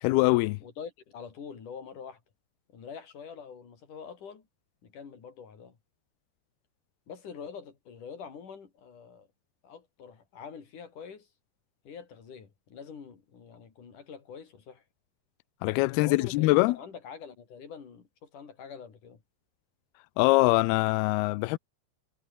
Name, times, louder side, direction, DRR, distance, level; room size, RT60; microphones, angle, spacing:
voice 1, 0.0-0.6 15.6-16.8 20.2-21.6, left 22 dB, 85° left, 2.3 m, -23 dB
voice 2, 0.6-2.2 2.7-4.5 4.8-5.8 7.1-9.3 9.6-11.3 11.9-14.8 15.9-19.2, left 6 dB, 50° left, 5.2 m, -45 dB
omnidirectional pair, 5.0 m